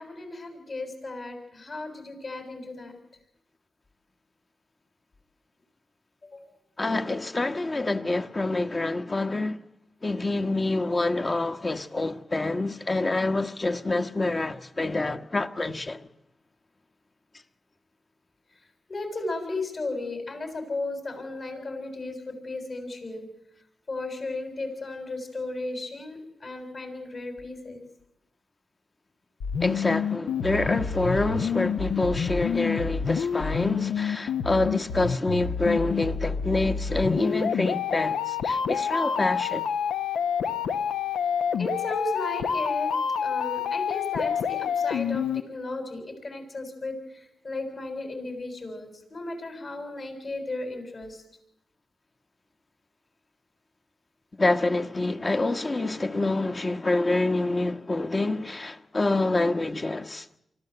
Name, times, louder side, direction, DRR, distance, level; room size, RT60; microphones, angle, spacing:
voice 1, 0.0-2.9 6.3-6.4 18.9-23.3 23.9-27.8 41.6-42.9 43.2-46.9 47.4-51.2, left 2 dB, 60° left, 7.2 m, -35 dB
voice 2, 6.8-9.6 10.0-16.1 29.6-39.6 54.4-60.3, left 2 dB, 40° left, 1.3 m, -27 dB
sound 1, 29.4-45.4, left 7 dB, 90° left, 0.8 m, -28 dB
24.5 x 14.5 x 7.9 m
supercardioid pair, 45°, 0 cm